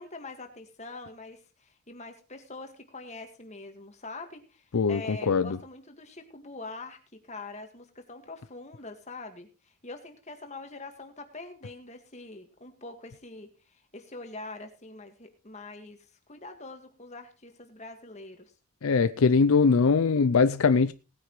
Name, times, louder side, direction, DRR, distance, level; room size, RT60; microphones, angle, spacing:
voice 1, 0.0-7.0 7.2-18.5, left 3 dB, 30° left, 1.8 m, -44 dB
voice 2, 4.7-5.6 18.8-20.9, left 5 dB, 70° left, 0.5 m, -22 dB
18.5 x 9.5 x 3.2 m
head